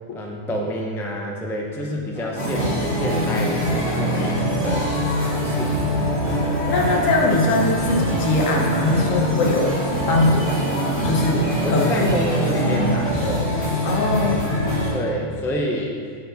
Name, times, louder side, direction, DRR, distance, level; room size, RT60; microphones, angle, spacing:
voice 1, 0.1-5.1 5.4-5.9 11.6-13.6 14.9-16.0, equal, 5° left, -1 dB, 0.4 m, -28 dB
sound 1, 2.1-13.1, right 2 dB, 85° right, 1.5 m, -37 dB
sound 2, 2.4-14.9, equal, 75° left, 2.5 m, -23 dB
voice 2, 6.7-9.8 10.1-10.5 11.0-11.9 13.8-14.5, left 2 dB, 90° left, 0 dB, 1.3 m, -21 dB
9.1 x 4.6 x 4.0 m, 2.1 s
omnidirectional pair, 1.3 m